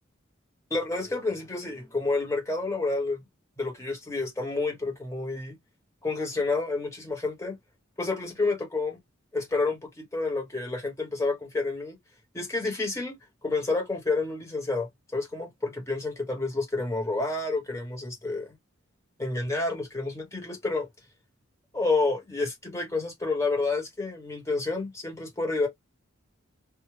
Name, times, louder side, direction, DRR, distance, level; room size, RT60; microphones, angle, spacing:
voice 1, 0.7-3.2 3.6-5.6 6.0-7.6 8.0-9.0 9.3-12.0 12.3-18.6 19.2-20.9 21.7-25.7, left 3 dB, 15° left, 0.9 m, -29 dB
2.2 x 2.0 x 3.1 m
head